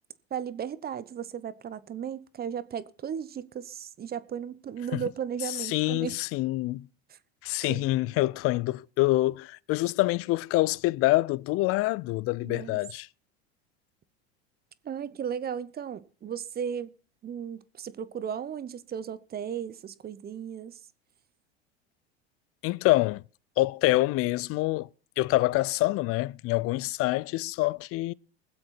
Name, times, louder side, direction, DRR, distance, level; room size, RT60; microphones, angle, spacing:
voice 1, 0.3-6.2 7.1-7.2 7.7-7.8 12.4-12.8 14.8-16.9 17.2-20.8, right 8 dB, 30° right, 0.9 m, -35 dB
voice 2, 5.5-6.9 7.4-13.1 22.6-23.2 23.6-24.9 25.2-28.1, left 19 dB, 45° left, 0.5 m, -26 dB
20.5 x 7.6 x 4.3 m
hypercardioid pair, 85°, 34 cm